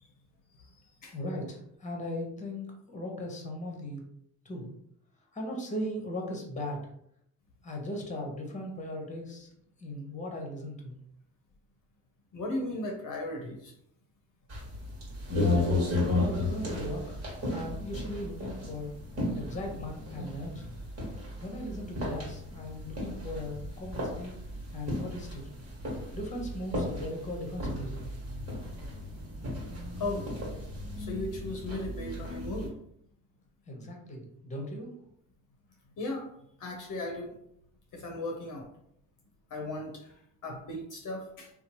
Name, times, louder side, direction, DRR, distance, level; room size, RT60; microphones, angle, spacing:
voice 1, 1.1-4.0 4.4-4.7 5.3-6.8 7.6-9.5 9.8-11.0 15.3-17.2 17.5-19.0 19.3-20.7 21.4-24.3 24.7-25.5 26.1-28.0 33.7-34.9, left 1 dB, 20° left, 1 dB, 0.8 m, -38 dB
voice 2, 12.3-13.7 17.6-17.7 30.0-30.3 31.0-32.7 36.0-36.3 36.6-37.3 37.9-38.7 39.5-40.1 40.4-41.5, left 2 dB, 55° left, 1 dB, 0.7 m, -36 dB
sound 1, 14.5-32.7, left 2 dB, 40° right, 1.3 m, -34 dB
2.9 x 2.0 x 2.9 m, 0.72 s
cardioid pair, 80°, 38 cm